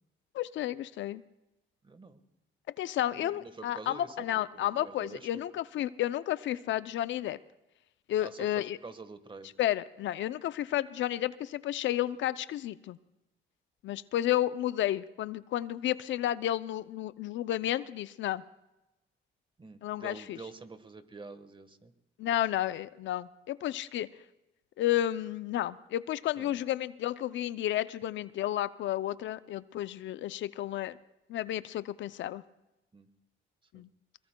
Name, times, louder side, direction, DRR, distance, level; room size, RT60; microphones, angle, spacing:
voice 1, 0.3-1.2 2.8-7.4 8.1-8.8 9.6-13.0 13.8-18.4 19.8-20.4 22.2-24.1 24.8-31.0 31.3-32.4 33.7-33.9, left 13 dB, 70° left, 15 dB, 0.5 m, -32 dB
voice 2, 1.8-2.2 3.1-5.3 8.2-9.5 19.6-21.9 26.4-26.6 32.9-33.1 33.7-33.8, right 3 dB, 25° right, 10 dB, 1.3 m, -47 dB
22.0 x 22.0 x 2.2 m, 0.97 s
cardioid pair, 90°, 20 cm